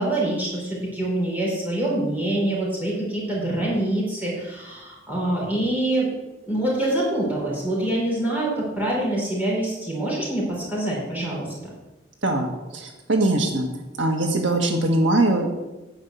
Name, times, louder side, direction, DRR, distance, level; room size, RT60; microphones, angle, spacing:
voice 1, 0.0-6.1 6.5-11.5, right 1 dB, 10° right, -5 dB, 5.2 m, -25 dB
voice 2, 12.2-13.7 14.0-15.5, right 2 dB, 85° right, 3 dB, 1.7 m, -22 dB
10.0 x 6.9 x 8.1 m, 1.0 s
head